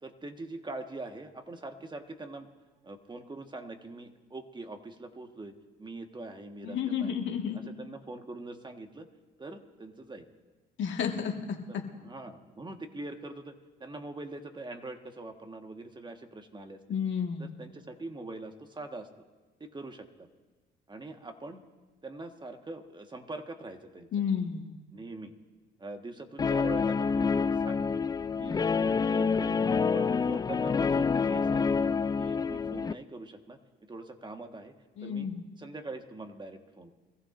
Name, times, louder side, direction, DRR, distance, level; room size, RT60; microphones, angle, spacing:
voice 1, 0.0-2.5 2.8-5.5 5.8-7.1 7.5-9.1 9.4-10.3 11.7-13.5 13.8-16.8 17.4-19.1 19.6-20.3 20.9-21.6 22.0-24.1 24.9-25.3 25.8-28.0 28.4-29.6 29.9-31.9 32.2-34.7 35.0-35.3 35.6-36.9, right 2 dB, 20° right, 5 dB, 1.5 m, -43 dB
voice 2, 6.6-7.6 10.8-11.8 16.9-17.6 24.1-24.7 35.0-35.4, left 7 dB, 65° left, 2 dB, 1.8 m, -31 dB
Guitar, 26.4-32.9, left 5 dB, 20° left, 0.3 m, -27 dB
23.5 x 15.0 x 2.6 m, 1.2 s
supercardioid pair, 75°, 21 cm